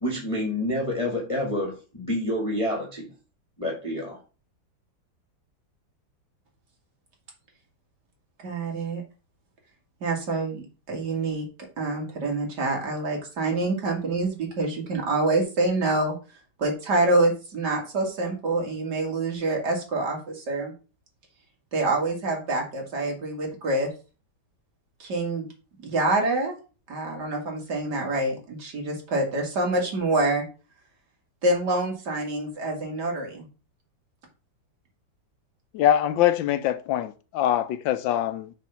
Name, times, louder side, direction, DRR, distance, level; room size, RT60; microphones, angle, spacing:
voice 1, 0.0-3.1 3.6-4.2, left 1 dB, 20° left, 1.6 m, -28 dB
voice 2, 8.4-9.0 10.0-11.5 11.8-16.2 16.6-20.7 21.7-23.9 25.0-25.5 25.8-26.5 26.9-30.4 31.4-33.5, right 2 dB, 60° right, 2.6 m, -26 dB
voice 3, 35.7-38.5, left 11 dB, 85° left, 1.4 m, -23 dB
6.5 x 3.9 x 5.6 m
omnidirectional pair, 2.0 m